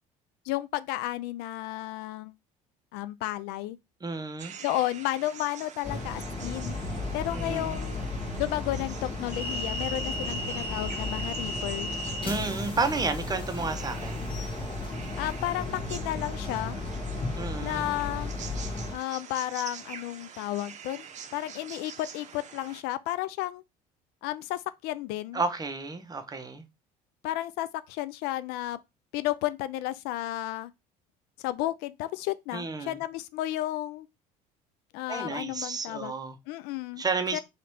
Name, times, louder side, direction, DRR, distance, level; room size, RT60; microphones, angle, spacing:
voice 1, 0.5-2.3 2.9-3.8 4.6-6.8 7.1-8.0 8.4-11.9 15.2-16.8 17.6-18.3 18.9-21.1 21.3-23.6 24.2-25.4 27.2-28.8 29.1-30.7 31.4-34.1 34.9-36.1 36.5-37.0 37.3-37.4, left 15 dB, 70° left, 0.4 m, -32 dB
voice 2, 4.0-4.6 7.3-7.8 12.2-14.3 17.3-17.9 25.3-26.6 32.5-33.0 35.1-36.4 37.0-37.4, right 4 dB, 20° right, 0.9 m, -31 dB
sound 1, 4.4-22.8, right 7 dB, 45° right, 0.8 m, -46 dB
sound 2, 5.8-18.9, left 2 dB, 30° left, 1.4 m, -34 dB
3.2 x 2.9 x 4.6 m
supercardioid pair, 80°, 17 cm